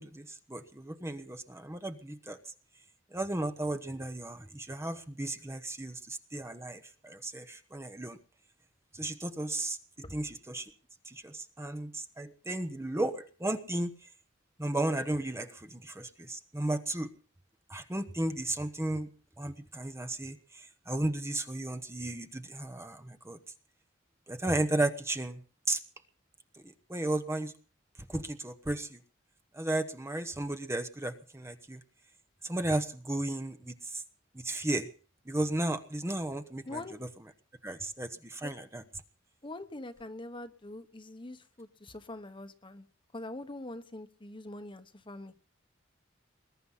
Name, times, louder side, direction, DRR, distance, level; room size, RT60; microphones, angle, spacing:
voice 1, 0.0-2.4 3.1-8.2 8.9-9.8 10.1-10.7 11.1-13.9 14.6-17.1 17.7-19.1 19.4-23.4 24.3-25.4 25.7-25.8 26.6-27.5 28.1-29.0 29.5-31.8 32.4-34.0 34.3-34.9 35.3-36.8 37.6-38.8, right 1 dB, 15° right, 8 dB, 1.0 m, -34 dB
voice 2, 36.7-37.0 38.4-38.5 39.4-42.8 43.1-45.4, left 2 dB, 25° left, 9 dB, 1.3 m, -43 dB
21.0 x 11.5 x 5.7 m, 0.40 s
head